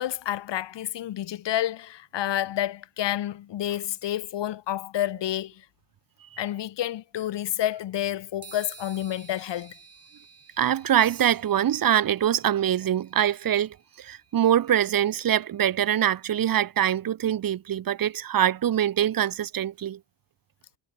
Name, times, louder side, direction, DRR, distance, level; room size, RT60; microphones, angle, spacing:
voice 1, 0.0-5.6 6.4-9.8, left 12 dB, 80° left, 1.4 m, -29 dB
sound 1, 8.4-16.1, right 5 dB, 35° right, 7.8 m, -53 dB
voice 2, 10.6-20.0, right 10 dB, 55° right, 0.9 m, -24 dB
wide cardioid pair, 130°, 42 cm